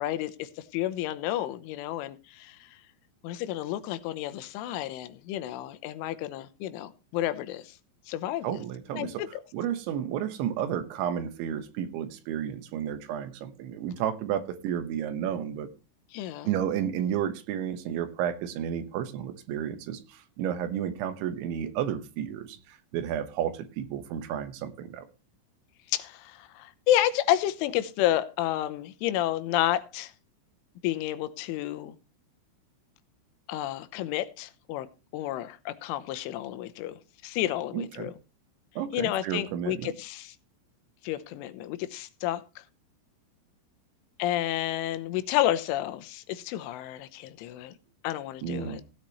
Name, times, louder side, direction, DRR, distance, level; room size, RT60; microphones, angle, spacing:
voice 1, 0.0-2.7 3.2-7.7 8.1-8.5 8.9-9.4 16.1-16.5 25.9-30.1 30.8-31.9 33.5-34.9 35.1-36.9 37.2-38.1 38.9-40.4 41.0-42.4 44.2-47.7 48.0-48.8, left 13 dB, 85° left, 3.3 m, -30 dB
voice 2, 8.4-9.2 9.5-15.7 16.4-20.0 20.4-22.6 22.9-25.1 37.7-38.1 38.8-39.9 48.4-48.8, right 9 dB, 75° right, 3.4 m, -32 dB
16.5 x 8.8 x 3.1 m
omnidirectional pair, 5.5 m